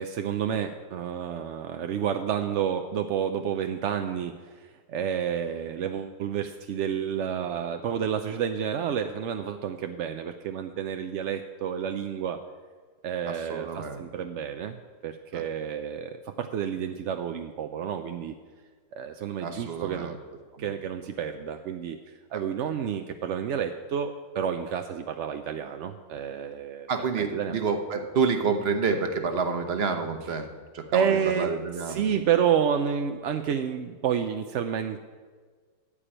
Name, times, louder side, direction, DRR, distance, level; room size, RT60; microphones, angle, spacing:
voice 1, 0.0-12.4 13.0-18.3 18.9-20.2 20.6-22.0 22.3-27.5 30.9-31.5 31.8-35.0, right 8 dB, 65° right, 7 dB, 0.7 m, -30 dB
voice 2, 13.3-14.0 15.3-15.4 19.4-20.2 20.5-20.7 22.3-22.4 26.9-30.5 30.7-32.0, right 5 dB, 45° right, 6 dB, 1.1 m, -28 dB
13.5 x 5.0 x 8.9 m, 1.5 s
omnidirectional pair, 1.7 m